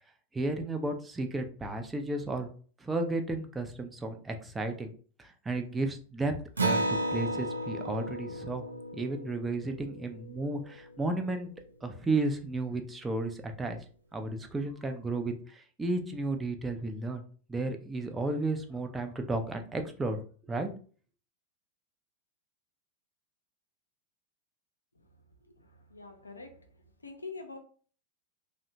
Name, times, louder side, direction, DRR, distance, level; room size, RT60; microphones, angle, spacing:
voice 1, 0.3-2.5 2.8-4.9 5.2-6.3 6.6-8.6 8.9-11.5 11.8-13.8 14.1-17.2 17.5-20.7, right 2 dB, 10° right, 5 dB, 0.4 m, -33 dB
Acoustic guitar, 6.6-11.5, right 1 dB, 75° right, 0.4 m, -34 dB
voice 2, 25.6-26.7 27.0-27.6, left 3 dB, 80° left, 5 dB, 0.5 m, -45 dB
2.7 x 2.1 x 2.7 m, 0.42 s
figure-of-eight pair, 90°, 0 cm